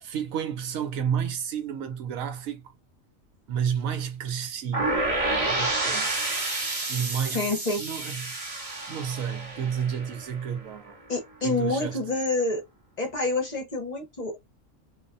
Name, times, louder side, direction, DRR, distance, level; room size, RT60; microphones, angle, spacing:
voice 1, 0.0-2.7 3.5-6.2 6.9-7.5 7.8-8.5 8.9-11.0 11.4-12.0, right 8 dB, 85° right, 1.0 m, -31 dB
sound 1, 4.7-10.6, right 2 dB, 30° right, 0.8 m, -29 dB
voice 2, 7.3-7.8 11.1-12.6 13.0-14.4, left 3 dB, 40° left, 0.7 m, -27 dB
2.5 x 2.1 x 2.4 m
omnidirectional pair, 1.4 m